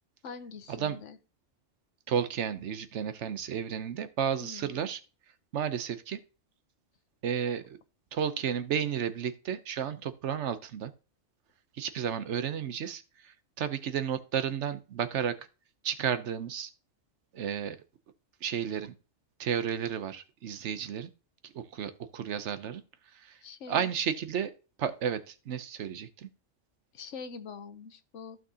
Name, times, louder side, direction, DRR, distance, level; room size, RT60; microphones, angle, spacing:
voice 1, 0.2-1.2 4.4-4.8 23.4-23.9 26.9-28.4, left 5 dB, 75° left, 10 dB, 1.2 m, -44 dB
voice 2, 2.1-5.0 5.5-6.2 7.2-7.6 8.1-10.9 11.8-15.4 15.8-16.7 17.3-17.8 18.4-18.9 19.4-21.1 21.4-22.8 23.1-23.4 23.7-24.5 24.8-26.3, right 8 dB, 70° right, 12 dB, 1.0 m, -32 dB
15.0 x 6.1 x 2.8 m, 0.34 s
omnidirectional pair, 1.3 m